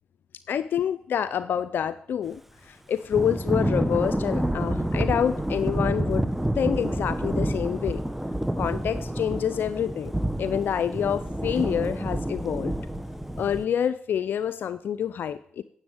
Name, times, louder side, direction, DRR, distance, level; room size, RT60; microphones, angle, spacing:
voice 1, 0.5-6.3 6.5-8.0 8.6-10.1 10.4-12.7 13.4-15.6, left 8 dB, 70° left, 13 dB, 0.5 m, -27 dB
Thunder / Rain, 3.1-13.7, right 1 dB, 5° right, 1.0 m, -28 dB
9.8 x 7.8 x 8.8 m, 0.67 s
cardioid pair, 60°, 4 cm